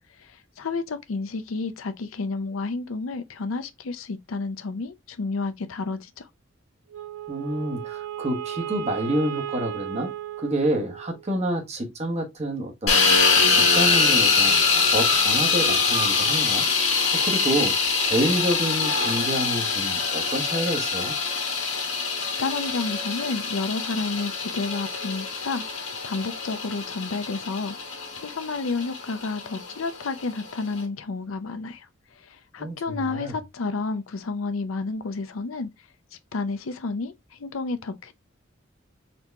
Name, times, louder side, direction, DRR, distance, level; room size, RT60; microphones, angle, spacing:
voice 1, 0.2-6.3 22.2-27.8 28.2-31.9 32.2-35.7 36.3-38.1, left 3 dB, 90° left, 0.6 m, -31 dB
Wind instrument woodwind instrument, 6.9-11.3, right 12 dB, 70° right, 0.9 m, -35 dB
voice 2, 7.3-10.1 10.4-13.0 13.5-14.5 14.9-16.7 17.1-17.8 18.0-21.2 32.6-33.3, right 1 dB, 35° right, 1.1 m, -28 dB
sound 1, 12.9-30.8, left 4 dB, 70° left, 1.7 m, -24 dB
4.2 x 2.9 x 3.3 m
head